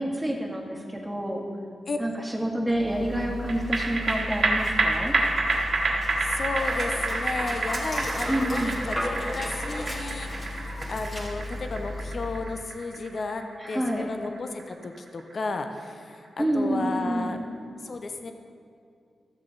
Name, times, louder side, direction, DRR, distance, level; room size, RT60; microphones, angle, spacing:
voice 1, 0.0-1.5 2.0-5.1 8.3-8.7 13.6-14.1 16.4-17.4, right 1 dB, 5° right, -2 dB, 1.9 m, -28 dB
Dog, 2.7-12.6, left 1 dB, 35° left, 2.6 m, -34 dB
sound 1, 3.5-16.1 16.5-16.6, right 3 dB, 65° right, 1.3 m, -29 dB
voice 2, 6.2-10.6 10.9-13.4 13.7-17.4 17.8-18.3, left 3 dB, 55° left, 6 dB, 0.7 m, -33 dB
13.5 x 7.2 x 4.0 m, 2.4 s
cardioid pair, 65°, 0 cm